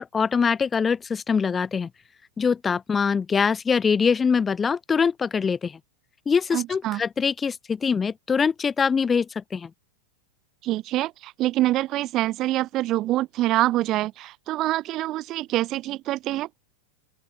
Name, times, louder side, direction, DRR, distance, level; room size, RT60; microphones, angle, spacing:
voice 1, 0.0-1.9 2.4-5.8 6.3-9.7, left 6 dB, 15° left, 0.5 m, -23 dB
voice 2, 6.5-7.0 10.6-16.5, right 15 dB, 35° right, 0.9 m, -25 dB
open air
figure-of-eight pair, 90°, 0 cm